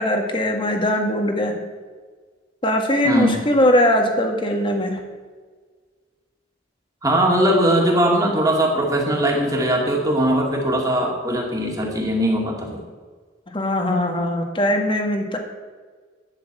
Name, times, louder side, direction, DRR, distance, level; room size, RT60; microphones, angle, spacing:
voice 1, 0.0-1.5 2.6-5.0 13.5-15.4, left 1 dB, 25° left, 3 dB, 1.7 m, -20 dB
voice 2, 3.0-3.4 7.0-12.8, right 1 dB, 20° right, -1 dB, 2.5 m, -20 dB
12.0 x 6.8 x 8.3 m, 1.5 s
head